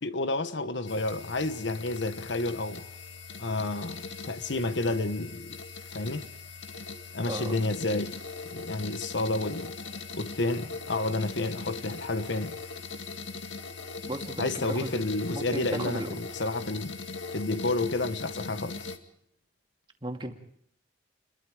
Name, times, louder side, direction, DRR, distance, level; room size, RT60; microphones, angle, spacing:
voice 1, 0.0-2.9 3.4-5.6 5.9-6.3 7.1-8.2 8.4-9.7 10.1-12.5 14.4-16.9 17.3-18.8, left 2 dB, 70° left, 1.3 m, -30 dB
sound 1, 0.9-19.0, left 4 dB, 85° left, 2.1 m, -40 dB
voice 2, 7.2-7.6 14.1-14.9 15.3-16.1 20.0-20.3, right 1 dB, 25° right, 2.5 m, -35 dB
29.5 x 22.5 x 5.0 m
head